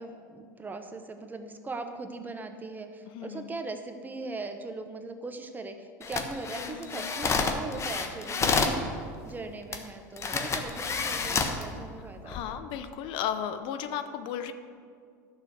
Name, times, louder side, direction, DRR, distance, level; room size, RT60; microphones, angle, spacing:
voice 1, 0.0-12.6, right 3 dB, 20° right, 7 dB, 1.1 m, -40 dB
voice 2, 3.1-3.5 6.6-7.1 8.3-8.6 12.2-14.5, left 9 dB, 55° left, 9 dB, 0.8 m, -35 dB
sound 1, 6.0-8.8 9.7-9.8 10.2-11.6 12.2-12.4, left 4 dB, 30° left, 1.3 m, -29 dB
11.5 x 6.7 x 6.5 m, 2.2 s
hypercardioid pair, 90°, 10 cm